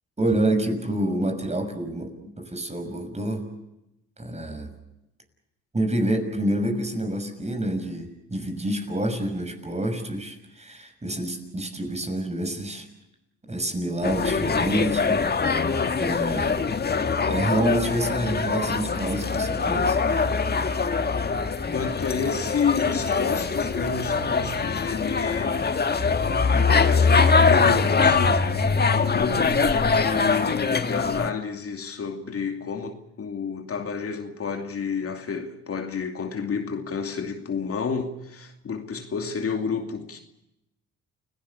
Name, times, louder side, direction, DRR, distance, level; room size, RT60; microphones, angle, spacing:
voice 1, 0.2-3.5 4.2-4.7 5.7-12.9 13.5-15.3 16.0-16.6 17.3-20.0, right 1 dB, 20° right, 6.2 m, -27 dB
sound 1, 14.0-31.3, left 4 dB, 30° left, 1.7 m, -23 dB
voice 2, 21.7-25.7 26.5-40.2, left 5 dB, 45° left, 2.7 m, -30 dB
29.5 x 17.5 x 7.1 m
supercardioid pair, 70°, 32 cm